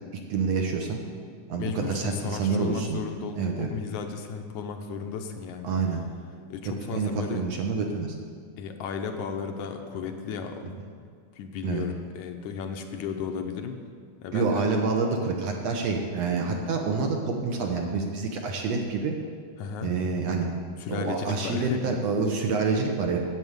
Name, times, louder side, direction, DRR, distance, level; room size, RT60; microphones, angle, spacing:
voice 1, 0.3-1.0 1.5-3.0 3.4-3.7 5.6-6.0 6.9-8.2 11.6-11.8 14.3-19.1 19.8-20.5 20.9-23.2, right 4 dB, 70° right, 2 dB, 1.8 m, -27 dB
voice 2, 1.6-5.7 6.5-7.5 8.6-10.6 11.4-13.8 14.2-14.7 19.6-20.0 20.8-21.9, left 6 dB, 75° left, 5 dB, 2.1 m, -34 dB
9.1 x 8.0 x 7.9 m, 2.1 s
omnidirectional pair, 3.6 m